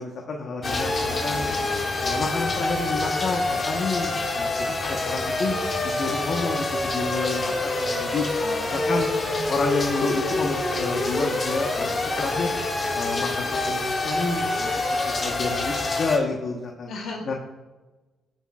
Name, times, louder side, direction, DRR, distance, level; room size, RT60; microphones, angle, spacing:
voice 1, 0.0-1.5 2.0-4.8 5.0-5.6 5.8-7.5 7.8-8.2 8.9-9.1 9.5-12.5 12.9-14.7 15.2-16.9 17.3-17.4, left 4 dB, 55° left, 1 dB, 1.2 m, -29 dB
sound 1, 0.6-16.2, left 2 dB, 35° left, 1.9 m, -26 dB
voice 2, 8.4-9.5 16.9-17.3, left 3 dB, 70° left, 0 dB, 2.7 m, -37 dB
18.5 x 7.3 x 2.4 m, 1.2 s
cardioid pair, 90°, 0 cm